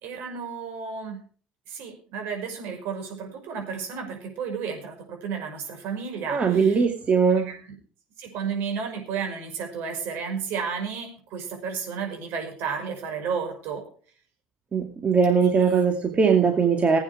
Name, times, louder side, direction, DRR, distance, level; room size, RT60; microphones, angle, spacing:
voice 1, 0.0-1.2 1.7-6.8 7.5-7.6 8.2-13.8 15.6-15.8, right 6 dB, 65° right, 3 dB, 5.8 m, -32 dB
voice 2, 6.3-7.5 14.7-17.0, right 6 dB, 35° right, 3 dB, 2.2 m, -20 dB
17.0 x 8.9 x 4.8 m, 0.44 s
hypercardioid pair, 70°, 4 cm